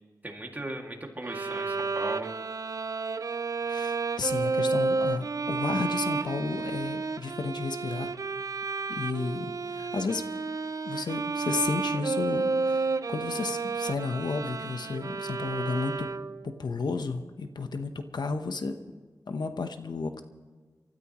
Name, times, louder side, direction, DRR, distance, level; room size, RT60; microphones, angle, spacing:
voice 1, 0.2-2.3, right 1 dB, 25° right, 1 dB, 2.3 m, -38 dB
Bowed string instrument, 1.2-16.5, right 4 dB, 50° right, 0.5 m, -31 dB
voice 2, 3.7-8.1 8.9-10.2 10.8-16.1 16.4-18.7 19.3-20.2, left 4 dB, 85° left, 7 dB, 1.0 m, -32 dB
28.5 x 13.5 x 3.1 m, 1.4 s
wide cardioid pair, 95°, 7 cm